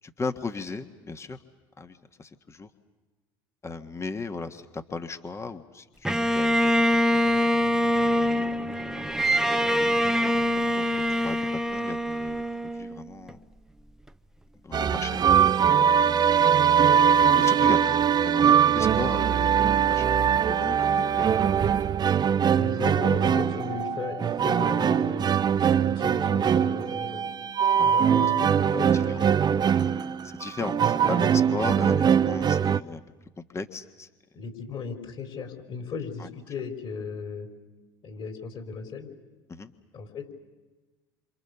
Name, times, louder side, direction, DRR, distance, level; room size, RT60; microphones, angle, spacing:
voice 1, 0.0-1.4 1.8-2.7 3.6-7.2 8.0-8.5 8.9-9.3 10.3-10.9 11.2-11.4 11.7-13.4 14.6-16.0 17.3-20.1 20.5-21.4 21.8-21.9 27.7-28.3 28.9-29.2 30.2-33.0 33.5-34.1 36.2-36.3 39.5-39.7, left 4 dB, 25° left, 7 dB, 1.6 m, -37 dB
Bowed string instrument, 6.0-13.3, equal, 5° right, 0.9 m, -24 dB
sound 1, 14.7-32.8, right 8 dB, 35° right, 0.8 m, -22 dB
voice 2, 22.6-25.3 25.8-27.2 27.8-29.3 34.3-37.5 38.0-39.1 39.9-40.3, left 5 dB, 45° left, 5 dB, 4.9 m, -36 dB
27.5 x 27.0 x 7.0 m, 1.2 s
hypercardioid pair, 70°, 12 cm